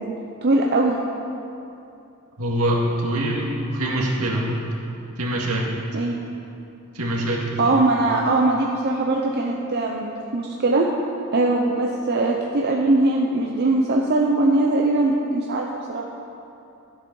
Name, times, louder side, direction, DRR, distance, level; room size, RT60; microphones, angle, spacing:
voice 1, 0.4-1.0 5.9-6.1 7.6-10.9 11.3-16.0, right 2 dB, 50° right, -1 dB, 0.7 m, -21 dB
voice 2, 2.4-4.6 5.2-5.6 6.9-7.8, right 1 dB, 75° right, -2 dB, 2.0 m, -24 dB
13.0 x 8.1 x 5.5 m, 2.7 s
head